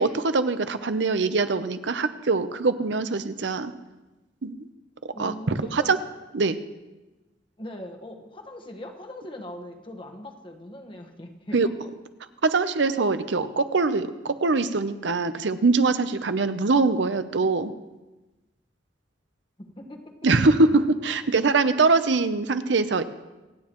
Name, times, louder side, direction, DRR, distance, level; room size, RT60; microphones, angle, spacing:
voice 1, 0.0-3.7 4.4-4.6 5.2-6.0 6.3-6.6 11.5-11.7 12.4-17.7 20.2-23.0, right 3 dB, 70° right, 11 dB, 0.7 m, -23 dB
voice 2, 5.1-5.9 7.6-11.7 19.6-20.1 21.2-21.3, left 1 dB, 30° left, 3 dB, 1.3 m, -40 dB
26.5 x 9.5 x 3.0 m, 1.1 s
head